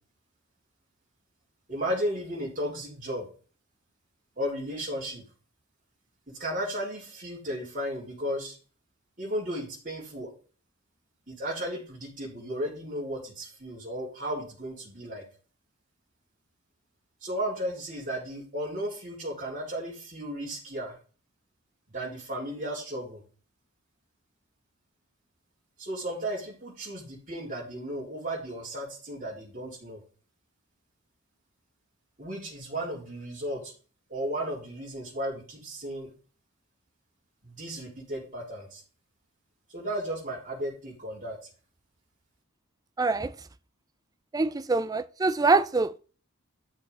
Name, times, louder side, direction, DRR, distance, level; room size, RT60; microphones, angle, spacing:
voice 1, 1.7-3.3 4.4-5.2 6.4-8.5 9.2-10.3 11.3-15.2 17.2-21.0 21.9-23.2 25.8-30.0 32.2-33.7 34.1-36.1 37.4-38.8 39.7-41.4, equal, 40° right, 3.7 m, -34 dB
voice 2, 43.0-43.4 44.3-45.9, right 3 dB, 15° right, 0.4 m, -24 dB
11.0 x 6.4 x 3.6 m
head